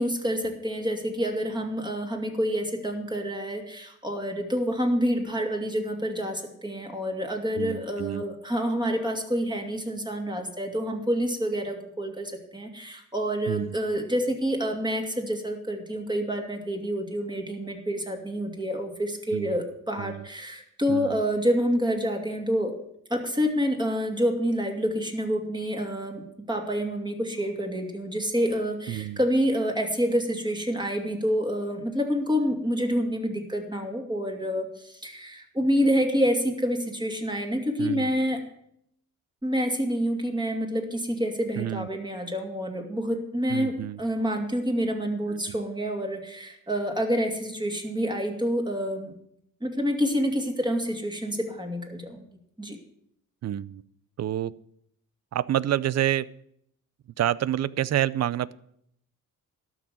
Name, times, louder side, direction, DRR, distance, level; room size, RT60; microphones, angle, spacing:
voice 1, 0.0-22.7 23.1-38.4 39.4-49.1 49.6-52.2 52.6-52.8, equal, 15° right, 3 dB, 2.7 m, -28 dB
voice 2, 7.6-8.2 13.5-13.7 19.3-19.6 20.0-20.3 20.9-21.2 28.9-29.2 37.8-38.1 41.6-41.9 43.5-44.0 45.3-45.5 53.4-53.8 54.2-54.5 55.3-56.3 57.2-58.5, right 12 dB, 55° right, 20 dB, 0.5 m, -28 dB
12.5 x 6.2 x 9.4 m, 0.71 s
cardioid pair, 85°, 32 cm